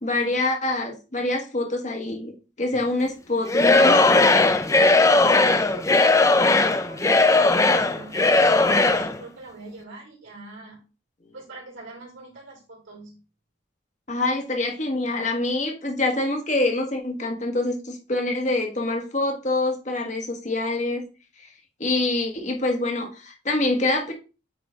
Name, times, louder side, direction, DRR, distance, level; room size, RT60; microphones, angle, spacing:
voice 1, 0.0-4.3 14.1-21.0 21.4-21.5 21.8-24.1, left 2 dB, 35° left, 2 dB, 1.4 m, -25 dB
Singing / Crowd, 3.5-9.1, left 2 dB, 15° left, 0.4 m, -18 dB
voice 2, 5.2-10.8 11.3-13.2, right 2 dB, 80° right, -4 dB, 3.5 m, -42 dB
8.6 x 3.8 x 3.9 m, 0.33 s
head